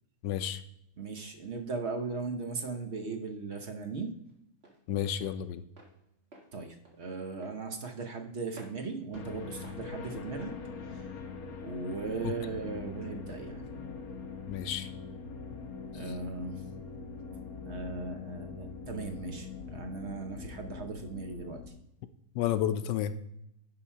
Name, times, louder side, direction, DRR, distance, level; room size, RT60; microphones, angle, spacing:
voice 1, 0.2-0.6 4.9-5.6 12.2-12.3 14.5-14.9 22.3-23.2, left 10 dB, 75° left, 11 dB, 1.1 m, -31 dB
voice 2, 1.0-4.1 6.5-10.5 10.8-11.1 11.6-13.6 15.9-16.6 17.6-21.6, right 4 dB, 55° right, 5 dB, 0.8 m, -38 dB
Walk footsteps, 2.3-11.0, right 2 dB, 30° right, 1.9 m, -58 dB
sound 1, 9.1-21.7, left 5 dB, 55° left, 1.3 m, -42 dB
10.5 x 3.8 x 5.5 m, 0.81 s
omnidirectional pair, 2.2 m